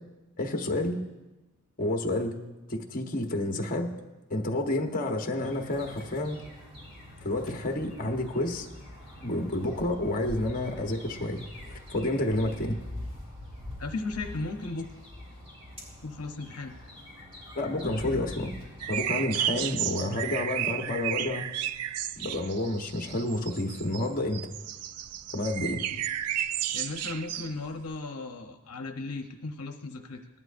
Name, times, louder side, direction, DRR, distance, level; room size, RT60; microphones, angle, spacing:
voice 1, 0.4-1.0 1.8-2.4 2.7-3.9 4.3-6.4 7.2-8.7 9.2-12.8 17.5-18.6 18.9-21.5 22.2-24.5 25.3-25.8, left 1 dB, 40° left, 3 dB, 1.1 m, -30 dB
sound 1, 5.4-19.0, left 1 dB, 25° right, 4.2 m, -44 dB
voice 2, 13.8-14.9 16.0-16.7 25.6-26.0 26.7-30.3, left 3 dB, 70° left, 5 dB, 0.8 m, -36 dB
sound 2, 18.8-28.0, right 11 dB, 90° right, 0.4 m, -33 dB
19.0 x 11.0 x 2.6 m, 1.1 s
head